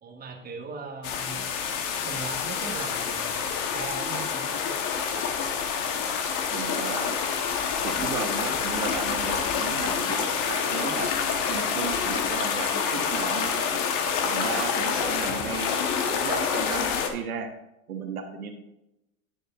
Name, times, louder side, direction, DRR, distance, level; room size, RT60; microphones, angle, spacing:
voice 1, 0.0-1.4 2.0-4.8, right 4 dB, 20° right, 3 dB, 1.5 m, -39 dB
sound 1, 1.0-17.1, left 6 dB, 45° left, 1.2 m, -27 dB
voice 2, 6.5-7.2 7.8-11.1 11.5-13.8 14.2-15.7 16.1-17.5 17.9-18.5, right 5 dB, 90° right, 5 dB, 1.3 m, -34 dB
10.0 x 6.6 x 2.5 m, 0.88 s
hypercardioid pair, 105°, 43 cm